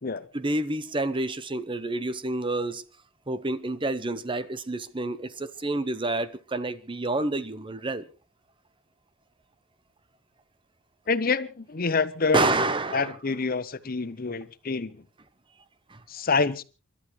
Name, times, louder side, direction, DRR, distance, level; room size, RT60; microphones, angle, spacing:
voice 1, 0.3-2.8 3.3-8.0 12.3-13.2 15.9-16.0, right 2 dB, 25° right, 0.8 m, -28 dB
voice 2, 11.1-12.5 12.9-15.0 16.1-16.6, left 4 dB, 45° left, 0.8 m, -27 dB
29.5 x 12.5 x 3.1 m
head